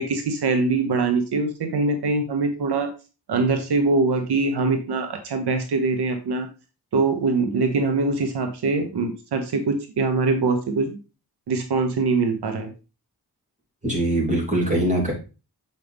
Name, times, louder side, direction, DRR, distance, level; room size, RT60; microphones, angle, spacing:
voice 1, 0.0-2.9 3.3-6.5 6.9-11.0 11.5-12.7, right 3 dB, 80° right, 6 dB, 1.1 m, -23 dB
voice 2, 13.8-15.1, right 1 dB, 20° right, -2 dB, 3.4 m, -22 dB
7.6 x 5.4 x 3.4 m, 0.32 s
wide cardioid pair, 100°, 39 cm